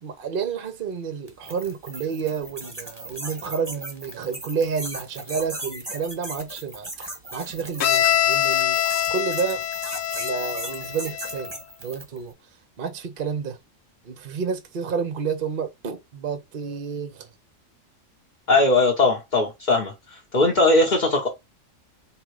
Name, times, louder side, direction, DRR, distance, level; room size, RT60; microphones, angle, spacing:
voice 1, 0.0-8.8 9.1-9.6 10.2-12.3 12.8-13.6 14.0-17.3 20.6-20.7, right 6 dB, 50° right, 0.8 m, -30 dB
sound 1, 1.3-12.2, right 1 dB, 20° right, 1.3 m, -37 dB
Bowed string instrument, 7.8-11.5, left 11 dB, 75° left, 0.9 m, -24 dB
voice 2, 18.5-21.3, left 2 dB, 40° left, 1.1 m, -20 dB
3.7 x 3.0 x 4.7 m
omnidirectional pair, 1.4 m